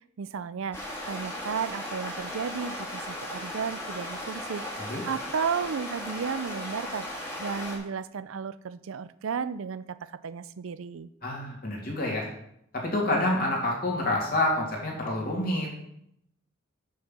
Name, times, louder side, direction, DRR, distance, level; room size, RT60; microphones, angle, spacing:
voice 1, 0.2-0.8 1.1-7.1 7.4-11.1, right 6 dB, 85° right, 15 dB, 0.4 m, -33 dB
sound 1, 0.7-7.8, left 1 dB, 10° left, 1.9 m, -37 dB
voice 2, 11.2-12.3 12.8-15.7, left 1 dB, 45° left, -2 dB, 2.7 m, -28 dB
6.3 x 5.8 x 7.2 m, 0.74 s
head